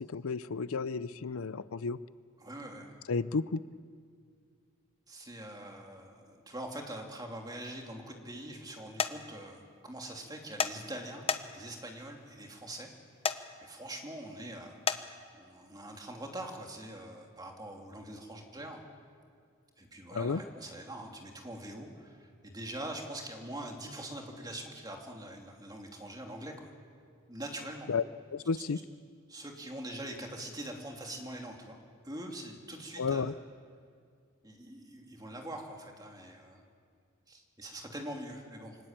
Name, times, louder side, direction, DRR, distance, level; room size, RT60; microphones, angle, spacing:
voice 1, 0.0-2.0 3.1-3.6 20.1-20.4 27.9-28.0 28.3-28.8 33.0-33.3, left 5 dB, 75° left, 16 dB, 0.6 m, -32 dB
voice 2, 2.4-2.9 5.1-11.2 11.5-12.9 13.6-14.8 15.3-18.8 19.8-26.7 27.3-27.9 29.3-31.8 32.0-33.3 34.4-36.6 37.3-38.8, right 1 dB, 20° right, 1 dB, 2.9 m, -43 dB
sound 1, 9.0-9.1 10.6-10.7 11.3-11.7 13.2-13.4 14.9-15.0, left 6 dB, 30° left, 0.9 m, -29 dB
24.0 x 21.0 x 8.9 m, 2.2 s
head